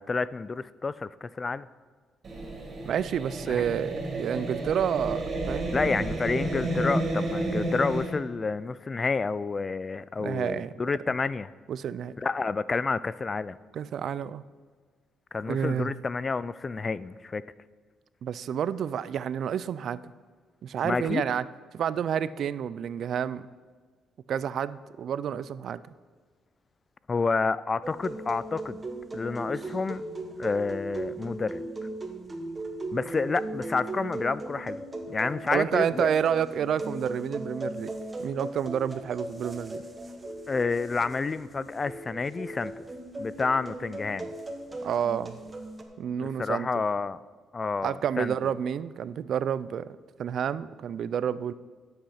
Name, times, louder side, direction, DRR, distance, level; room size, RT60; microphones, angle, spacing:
voice 1, 0.0-1.7 3.5-3.6 5.7-11.5 12.2-13.6 15.3-17.4 20.8-21.2 27.1-28.8 29.1-30.0 30.4-31.6 32.9-36.1 40.5-42.7 43.2-44.3 46.2-47.2 47.5-48.3, left 4 dB, 30° left, 18 dB, 0.4 m, -29 dB
sound 1, 2.2-8.1, right 1 dB, 45° right, 3.2 m, -31 dB
voice 2, 2.8-6.1 10.2-10.7 11.7-12.1 13.7-14.4 15.5-15.9 18.2-20.0 20.6-21.5 21.7-23.4 24.3-25.8 35.5-37.9 38.2-39.8 44.8-45.4 46.0-46.7 47.8-49.9 50.2-51.5, right 8 dB, 65° right, 16 dB, 0.4 m, -29 dB
sound 2, 27.8-45.8, right 2 dB, 25° right, 1.5 m, -38 dB
11.5 x 8.0 x 5.7 m, 1.5 s
cardioid pair, 90°, 0 cm